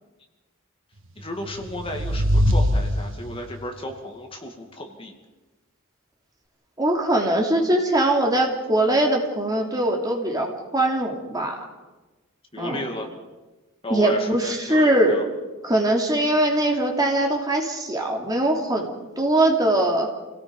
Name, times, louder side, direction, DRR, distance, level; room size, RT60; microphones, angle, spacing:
voice 1, 1.2-5.2 12.5-13.1 13.8-15.2, left 1 dB, 25° left, 3 dB, 2.2 m, -34 dB
sound 1, 1.3-3.6, equal, 65° right, 1.4 m, -23 dB
voice 2, 6.8-11.7 12.6-12.8 13.9-15.2 15.6-18.9 19.2-20.1, right 1 dB, 20° right, 1 dB, 2.9 m, -21 dB
28.5 x 18.0 x 5.4 m, 1.2 s
head